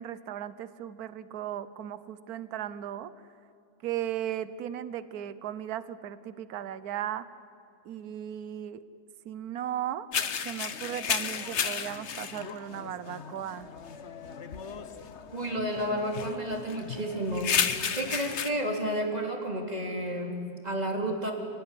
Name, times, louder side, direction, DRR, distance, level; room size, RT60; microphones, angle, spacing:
voice 1, 0.0-3.1 3.8-7.3 7.8-8.8 9.2-10.1 10.4-13.7, right 11 dB, 75° right, 15 dB, 1.3 m, -36 dB
sound 1, 10.1-18.5, left 7 dB, 50° left, 1.2 m, -33 dB
voice 2, 15.3-17.5 17.9-21.3, equal, 25° right, 1 dB, 3.2 m, -31 dB
28.5 x 19.0 x 9.9 m, 2.6 s
omnidirectional pair, 1.7 m